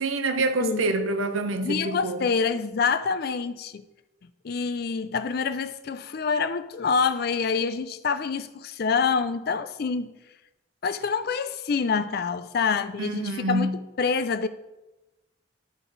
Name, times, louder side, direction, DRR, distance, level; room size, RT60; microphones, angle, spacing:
voice 1, 0.0-2.3 13.0-13.8, right 2 dB, 85° right, 0.7 m, -26 dB
voice 2, 1.6-3.8 4.4-10.1 10.8-13.7 14.0-14.5, left 5 dB, 50° left, 0.4 m, -26 dB
11.0 x 4.1 x 3.9 m
head